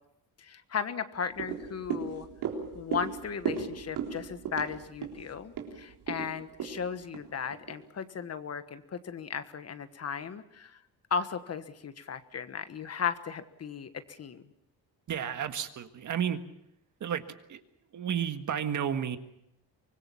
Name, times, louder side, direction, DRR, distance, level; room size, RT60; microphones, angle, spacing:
voice 1, 0.4-2.3 2.7-10.8 11.1-14.4, left 6 dB, 40° left, 11 dB, 1.4 m, -36 dB
sound 1, 1.3-7.8 8.2-8.3, right 7 dB, 80° right, 3.9 m, -37 dB
voice 2, 15.1-16.4 17.0-17.2 17.5-17.6 17.9-19.2, right 8 dB, 45° right, 8 dB, 1.7 m, -31 dB
24.5 x 20.5 x 7.1 m, 0.79 s
cardioid pair, 130°, 40 cm